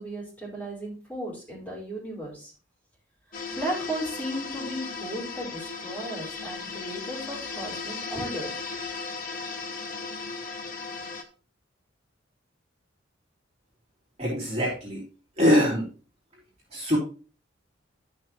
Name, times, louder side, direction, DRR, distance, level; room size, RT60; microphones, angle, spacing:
voice 1, 0.0-2.5 3.5-8.6, right 1 dB, 10° left, -6 dB, 4.8 m, -35 dB
sound 1, 3.3-11.2, left 4 dB, 45° left, 1.0 m, -36 dB
voice 2, 14.2-15.0 15.4-15.9 16.7-17.0, equal, 30° right, -5 dB, 3.4 m, -23 dB
12.5 x 6.1 x 3.1 m, 0.37 s
head